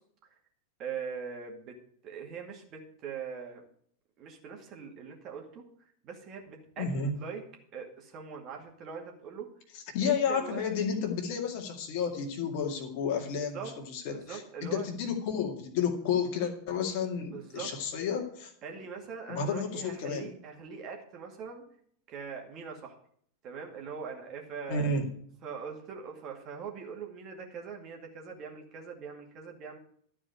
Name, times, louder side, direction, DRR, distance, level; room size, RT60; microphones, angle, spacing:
voice 1, 0.8-1.8 2.0-3.6 4.2-5.6 6.0-6.9 7.2-7.4 7.7-9.5 10.0-10.6 13.5-13.7 14.0-14.8 17.3-17.7 18.6-21.6 22.1-23.0 23.4-24.9 25.4-29.8, right 6 dB, 35° right, 1 dB, 2.3 m, -42 dB
voice 2, 6.8-7.1 9.9-18.5 19.3-20.3 24.7-25.1, left 5 dB, 45° left, 3 dB, 2.1 m, -31 dB
12.5 x 4.9 x 8.2 m, 0.63 s
figure-of-eight pair, 90°, 0 cm